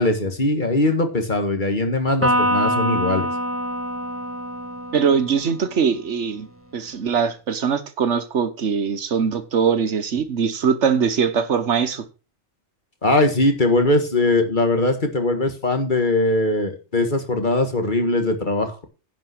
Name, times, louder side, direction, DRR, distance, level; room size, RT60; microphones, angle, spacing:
voice 1, 0.0-3.3 13.0-18.8, left 2 dB, 45° left, 1.9 m, -20 dB
Electric guitar, 2.2-5.8, equal, 10° right, 1.7 m, -24 dB
voice 2, 4.9-6.5 6.7-12.0, right 6 dB, 80° right, 1.4 m, -21 dB
10.5 x 5.5 x 6.0 m
omnidirectional pair, 1.2 m